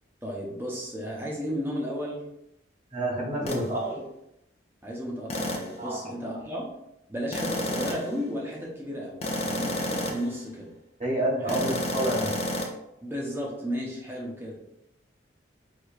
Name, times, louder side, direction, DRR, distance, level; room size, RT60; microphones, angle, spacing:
voice 1, 0.2-2.2 3.4-3.5 3.7-4.0 4.8-6.7 7.1-10.7 11.4-11.6 13.0-14.6, equal, 10° right, -4 dB, 0.8 m, -34 dB
voice 2, 2.9-3.8 5.8-6.0 11.0-12.3, right 1 dB, 40° right, -4 dB, 1.4 m, -28 dB
sound 1, 3.5-3.7 5.3-5.8 7.3-8.2 9.2-10.3 11.5-12.7, left 1 dB, 35° left, 0.5 m, -30 dB
4.8 x 3.1 x 2.4 m, 0.83 s
head